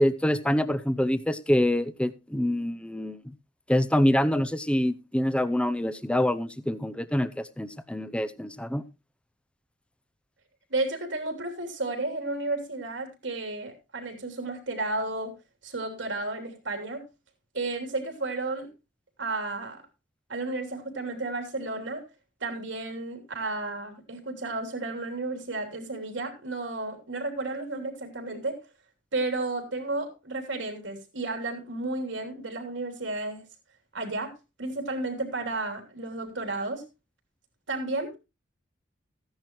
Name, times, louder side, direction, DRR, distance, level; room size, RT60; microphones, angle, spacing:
voice 1, 0.0-3.2 3.7-8.8, left 1 dB, 5° left, 0.6 m, -25 dB
voice 2, 10.7-15.3 15.6-17.1 17.5-18.7 19.2-19.8 20.3-22.0 22.4-28.6 29.1-33.4 33.9-36.8 37.7-38.1, right 2 dB, 85° right, 3.2 m, -32 dB
15.0 x 10.5 x 3.1 m
head